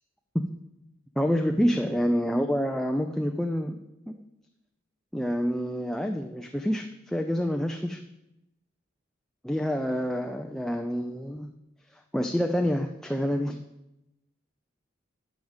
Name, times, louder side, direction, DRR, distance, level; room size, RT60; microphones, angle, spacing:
voice 1, 1.2-3.8 4.1-4.2 5.1-8.0 9.4-11.5 12.1-13.6, equal, ahead, 5 dB, 0.4 m, -27 dB
9.6 x 5.0 x 7.1 m, 0.90 s
head